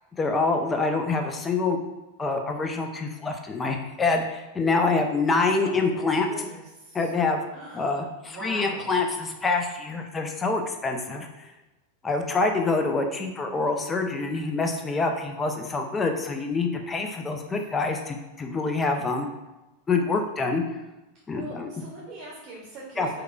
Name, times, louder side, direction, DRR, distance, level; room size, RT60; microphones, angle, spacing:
voice 1, 0.2-1.8 2.2-6.3 6.9-7.4 7.7-11.3 12.0-19.3 19.9-20.6 21.3-21.7 23.0-23.1, left 3 dB, 15° left, 4 dB, 0.4 m, -26 dB
voice 2, 6.2-7.1 7.5-8.0 8.3-8.9 17.6-17.7 21.3-23.1, right 2 dB, 35° right, -4 dB, 0.8 m, -41 dB
4.7 x 2.2 x 2.3 m, 1.0 s
figure-of-eight pair, 90°, 0 cm